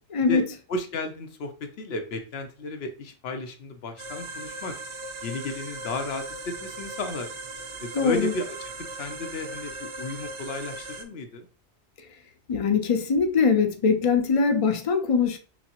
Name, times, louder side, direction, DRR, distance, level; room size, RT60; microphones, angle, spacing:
voice 1, 0.3-1.5 1.8-4.8 5.2-7.3 7.8-11.5, left 2 dB, 70° left, 0.9 m, -34 dB
sound 1, 4.0-11.0, right 2 dB, 55° right, 0.3 m, -38 dB
voice 2, 7.9-8.3 12.5-15.4, left 5 dB, 40° left, 0.5 m, -22 dB
5.9 x 2.1 x 2.8 m
omnidirectional pair, 1.1 m